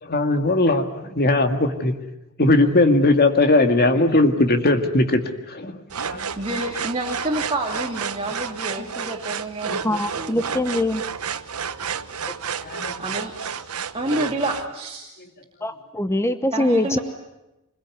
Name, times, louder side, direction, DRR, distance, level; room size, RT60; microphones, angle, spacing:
voice 1, 0.0-2.0 2.4-6.3 8.8-8.9 9.7-9.8 12.6-13.0 14.1-14.2, left 2 dB, 45° left, 6 dB, 2.1 m, -19 dB
sound 1, 5.9-14.7, right 6 dB, 80° right, 1.1 m, -31 dB
voice 2, 6.3-10.4 13.0-13.5 13.9-15.1 16.5-17.0, right 1 dB, 25° right, 0 dB, 2.6 m, -28 dB
voice 3, 9.8-11.0 12.3-12.4 15.6-17.0, left 1 dB, 10° left, 10 dB, 0.9 m, -23 dB
25.0 x 21.5 x 9.6 m, 0.97 s
head